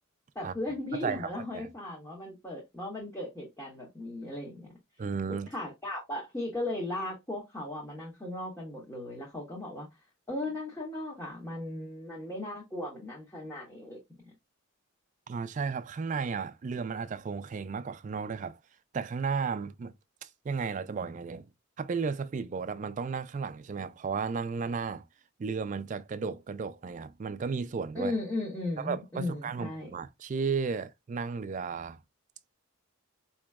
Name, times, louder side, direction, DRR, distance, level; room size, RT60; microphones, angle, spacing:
voice 1, 0.3-4.7 5.5-9.9 10.3-14.0 27.9-29.9, left 2 dB, 15° left, 1.1 m, -37 dB
voice 2, 0.9-1.7 5.0-5.5 15.3-18.6 18.9-19.9 20.2-21.5 21.8-25.0 25.4-28.2 28.8-32.0, right 5 dB, 35° right, 0.3 m, -34 dB
4.6 x 2.9 x 2.2 m
head